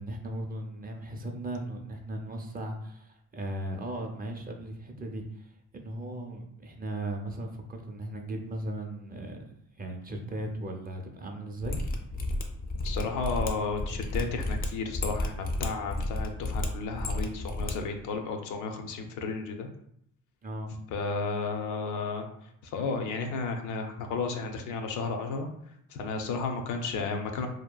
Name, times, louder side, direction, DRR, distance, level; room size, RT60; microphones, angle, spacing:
voice 1, 0.0-9.4 9.8-11.8 20.4-20.7, right 1 dB, 30° right, 3 dB, 0.5 m, -37 dB
Mechanisms, 11.6-17.7 18.0-18.1, left 1 dB, 30° left, 0.4 m, -32 dB
voice 2, 12.8-19.7 20.9-22.2 22.6-25.5 25.9-27.5, left 4 dB, 80° left, 4 dB, 0.5 m, -33 dB
2.8 x 2.3 x 2.2 m, 0.71 s
cardioid pair, 90°, 30 cm